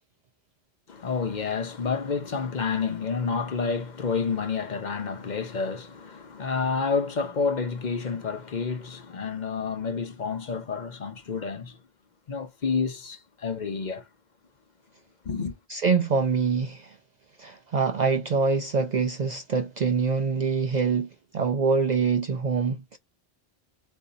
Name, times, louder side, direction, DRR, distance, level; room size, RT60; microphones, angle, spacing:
voice 1, 0.9-11.8 12.3-14.0 15.2-15.5, left 5 dB, 50° left, 0.8 m, -29 dB
voice 2, 15.7-17.0 17.4-23.0, right 5 dB, 55° right, 0.6 m, -25 dB
6.5 x 2.7 x 2.7 m
omnidirectional pair, 1.1 m